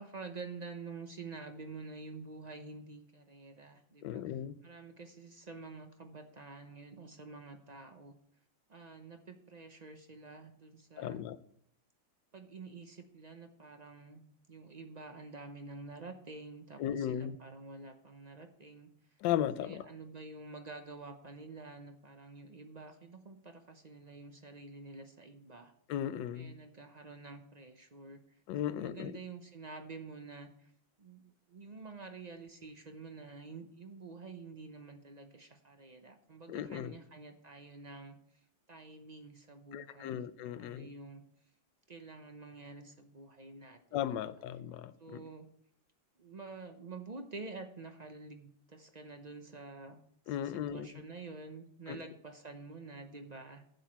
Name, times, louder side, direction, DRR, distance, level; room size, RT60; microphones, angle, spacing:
voice 1, 0.0-8.1 8.7-11.2 12.3-19.2 19.6-25.7 26.3-30.7 31.0-38.4 38.7-41.2 41.9-44.0 45.0-45.5 46.2-50.0 50.3-53.6, right 3 dB, 55° right, 0.4 m, -49 dB
voice 2, 4.0-4.5 11.0-11.4 16.8-17.4 19.2-19.8 25.9-26.5 28.5-29.2 36.5-37.0 39.7-40.9 43.9-45.2 50.3-50.9 51.9-52.0, left 10 dB, 75° left, 1.3 m, -36 dB
11.5 x 8.2 x 4.5 m
omnidirectional pair, 2.0 m